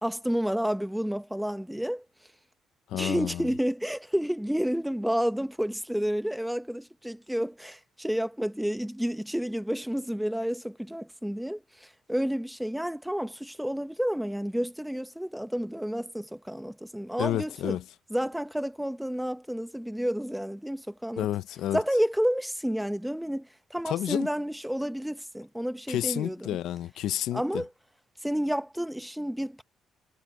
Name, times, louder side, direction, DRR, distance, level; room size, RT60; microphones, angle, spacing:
voice 1, 0.0-2.0 2.9-17.8 18.1-21.3 21.7-26.6 27.3-27.7 28.2-29.6, equal, 5° right, 1.1 m, -30 dB
voice 2, 2.9-3.4 17.2-17.8 21.2-21.8 23.9-24.3 25.9-27.6, left 12 dB, 80° left, 0.8 m, -30 dB
cardioid pair, 100°, 0 cm